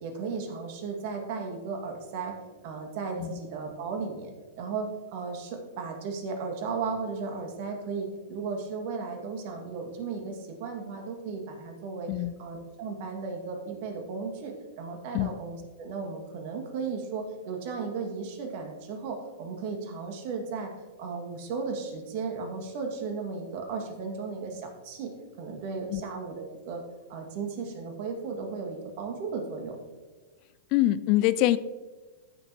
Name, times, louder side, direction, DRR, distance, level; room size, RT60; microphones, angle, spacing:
voice 1, 0.0-2.3 2.6-4.3 4.6-12.1 12.4-20.7 21.0-25.1 25.4-26.8 27.1-29.8, right 4 dB, 55° right, 3 dB, 2.1 m, -35 dB
voice 2, 30.7-31.6, left 15 dB, 45° left, 16 dB, 0.4 m, -24 dB
14.5 x 6.5 x 3.0 m, 1.3 s
hypercardioid pair, 105°, 0 cm